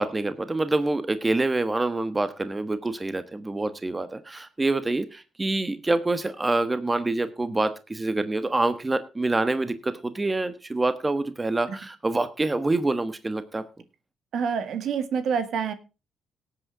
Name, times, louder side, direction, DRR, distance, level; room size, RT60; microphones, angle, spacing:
voice 1, 0.0-13.6, right 2 dB, 20° right, 12 dB, 1.3 m, -26 dB
voice 2, 14.3-15.7, right 6 dB, 70° right, 10 dB, 2.0 m, -27 dB
18.0 x 8.4 x 3.6 m, 0.30 s
cardioid pair, 90°, 0 cm